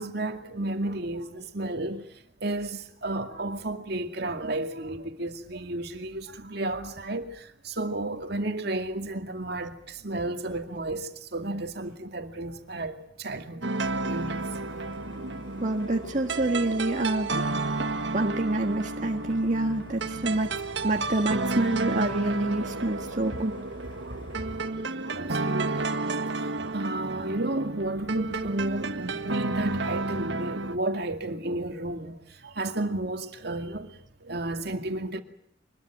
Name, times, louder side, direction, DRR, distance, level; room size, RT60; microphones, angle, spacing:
voice 1, 0.0-13.7 14.0-14.5 15.1-15.3 24.0-24.7 25.0-26.1 26.3-33.9 34.2-35.2, right 2 dB, 60° right, 2.3 m, -32 dB
sound 1, 13.6-30.8, right 3 dB, 75° right, 1.7 m, -31 dB
sound 2, 13.8-24.6, left 1 dB, 25° left, 6.4 m, -47 dB
voice 2, 15.6-17.4 18.1-20.5 20.8-23.5, right 2 dB, 45° right, 1.6 m, -27 dB
24.5 x 21.5 x 8.8 m
head